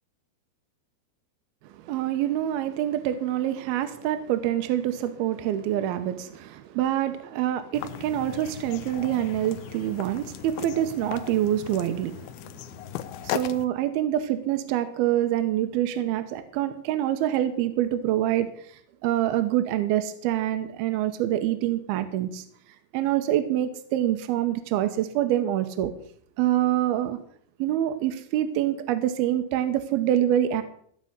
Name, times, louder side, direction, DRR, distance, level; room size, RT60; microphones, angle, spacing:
voice 1, 1.7-12.5 13.2-22.4 22.9-25.9 26.4-27.2 27.6-30.6, right 12 dB, 75° right, 9 dB, 2.4 m, -26 dB
sound 1, 7.7-13.7, left 12 dB, 85° left, 2.2 m, -37 dB
15.5 x 5.5 x 8.0 m, 0.65 s
omnidirectional pair, 5.0 m